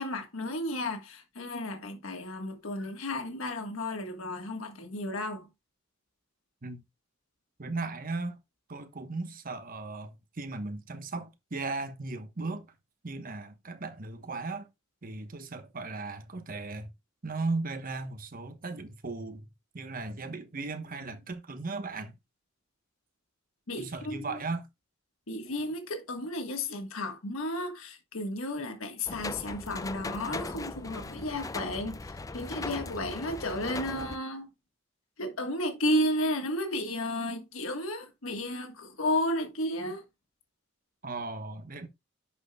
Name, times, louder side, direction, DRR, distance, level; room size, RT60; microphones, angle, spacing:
voice 1, 0.0-5.5 23.7-24.3 25.3-32.0 32.3-34.5 35.2-40.0, left 1 dB, 85° left, 1.5 m, -33 dB
voice 2, 7.6-8.4 8.7-12.7 13.0-14.7 15.0-16.9 17.2-19.5 19.7-22.1 23.8-24.7 41.0-41.9, right 3 dB, 45° right, 1.1 m, -36 dB
sound 1, 29.1-34.2, left 3 dB, 15° left, 0.4 m, -39 dB
10.5 x 6.7 x 2.3 m
head